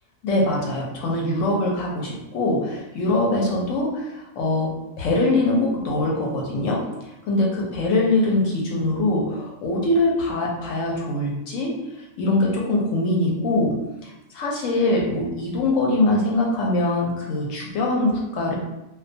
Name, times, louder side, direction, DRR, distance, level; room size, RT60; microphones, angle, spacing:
voice 1, 0.2-4.7 5.0-6.8 7.3-11.7 12.2-13.7 14.0-18.6, left 2 dB, 75° left, -2 dB, 0.9 m, -23 dB
2.3 x 2.2 x 2.6 m, 0.94 s
omnidirectional pair, 1.4 m